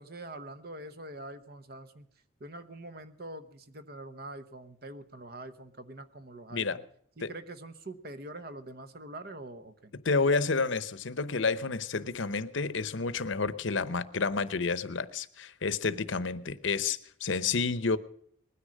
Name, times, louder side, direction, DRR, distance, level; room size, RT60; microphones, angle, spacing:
voice 1, 0.0-2.1 2.4-6.8 7.2-9.9, right 1 dB, 50° right, 12 dB, 1.0 m, -44 dB
voice 2, 10.0-18.0, left 4 dB, 75° left, 15 dB, 0.8 m, -30 dB
20.0 x 10.0 x 6.4 m, 0.66 s
head